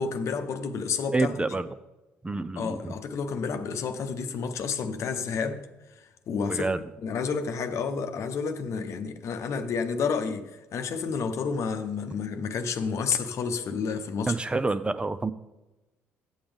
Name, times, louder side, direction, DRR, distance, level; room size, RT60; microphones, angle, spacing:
voice 1, 0.0-1.3 2.6-5.7 6.3-6.7 7.0-14.3, left 5 dB, 50° left, 0.9 m, -30 dB
voice 2, 1.1-1.7 2.2-2.9 6.5-6.8 14.3-15.3, right 3 dB, 15° right, 0.5 m, -28 dB
13.0 x 8.6 x 3.5 m
figure-of-eight pair, 50°, 6 cm